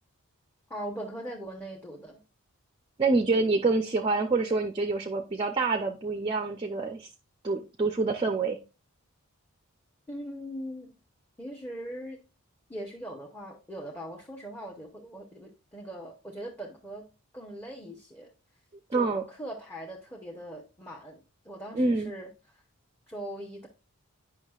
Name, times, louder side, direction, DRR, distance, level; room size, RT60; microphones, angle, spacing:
voice 1, 0.7-2.2 10.1-10.9 11.4-12.2 12.7-17.1 17.3-18.3 18.9-22.6 23.1-23.7, right 1 dB, 10° left, 0.8 m, -41 dB
voice 2, 3.0-7.1 7.4-8.6 18.9-19.2 21.7-22.1, right 3 dB, 25° right, 0.5 m, -26 dB
9.0 x 5.6 x 2.3 m
head